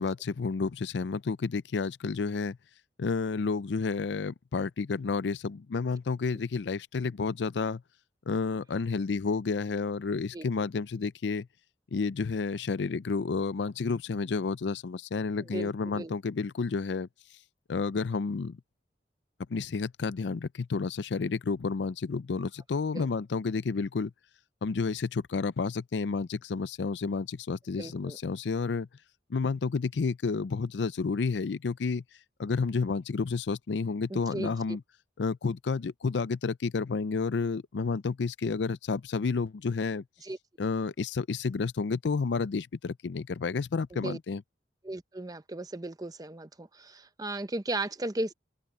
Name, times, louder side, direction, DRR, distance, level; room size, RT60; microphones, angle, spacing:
voice 1, 0.0-2.6 3.0-7.8 8.3-11.5 11.9-17.1 17.7-18.6 19.5-24.1 24.6-28.9 29.3-32.0 32.4-34.8 35.2-40.0 40.6-44.4, left 4 dB, 85° left, 0.5 m, -30 dB
voice 2, 15.5-16.1 22.9-23.1 27.8-28.2 34.1-34.8 40.2-40.4 43.9-44.2 44.8-48.3, right 2 dB, 20° right, 0.8 m, -36 dB
open air
head